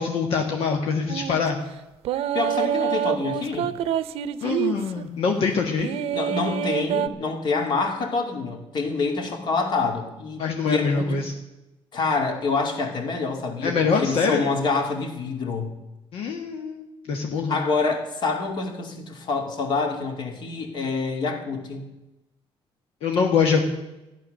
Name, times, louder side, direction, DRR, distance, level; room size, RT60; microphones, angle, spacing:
voice 1, 0.0-1.6 4.4-5.9 10.4-11.3 13.6-14.4 16.1-17.6 23.0-23.7, left 5 dB, 70° left, 2 dB, 1.5 m, -24 dB
sound 1, 1.1-1.4 2.0-5.0 5.8-7.1, right 10 dB, 80° right, 0.7 m, -26 dB
voice 2, 2.3-3.7 6.1-11.1 11.9-15.7 17.5-21.9, left 4 dB, 50° left, 4 dB, 2.4 m, -27 dB
14.5 x 11.0 x 6.5 m, 0.97 s
cardioid pair, 170°, 10 cm